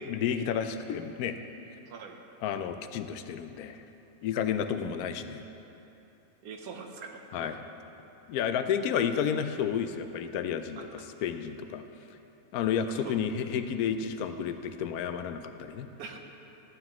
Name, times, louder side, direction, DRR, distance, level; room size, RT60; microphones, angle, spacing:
voice 1, 0.1-1.4 2.4-3.8 4.2-5.4 7.3-7.6 8.3-10.8 11.2-11.8 12.5-15.9, left 8 dB, 90° left, 9 dB, 1.1 m, -31 dB
voice 2, 1.9-2.2 4.6-4.7 6.4-7.6 8.8-9.0 10.7-11.1 12.8-13.2 16.0-16.2, right 4 dB, 85° right, 4 dB, 1.3 m, -44 dB
13.0 x 9.5 x 3.0 m, 2.9 s
omnidirectional pair, 1.5 m